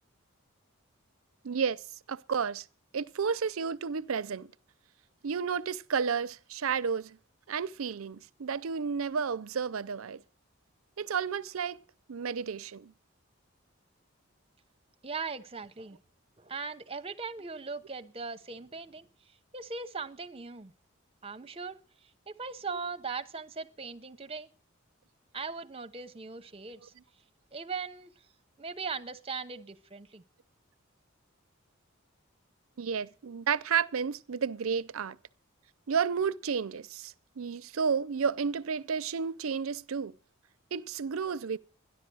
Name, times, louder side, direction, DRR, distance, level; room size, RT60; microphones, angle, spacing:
voice 1, 1.4-2.7 2.9-4.5 5.2-7.2 7.5-10.2 11.0-11.8 12.1-12.9 22.7-22.8 32.8-35.2 35.9-40.2 40.7-41.6, right 6 dB, 80° right, 0.5 m, -32 dB
voice 2, 15.0-16.0 16.4-19.1 19.5-20.7 21.2-21.8 22.3-24.5 25.3-26.9 27.5-28.1 28.6-30.2, right 4 dB, 25° right, 0.8 m, -39 dB
13.0 x 10.5 x 6.2 m
head